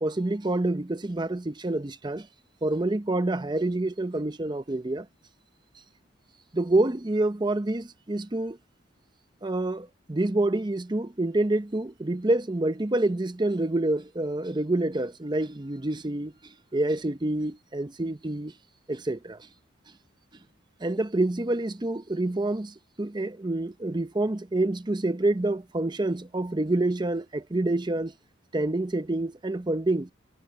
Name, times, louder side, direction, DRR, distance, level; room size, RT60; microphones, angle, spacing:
voice 1, 0.0-2.3 2.6-5.1 6.5-8.6 9.4-18.5 18.9-19.5 20.8-28.1 28.5-30.1, right 2 dB, 20° right, 0.6 m, -27 dB
head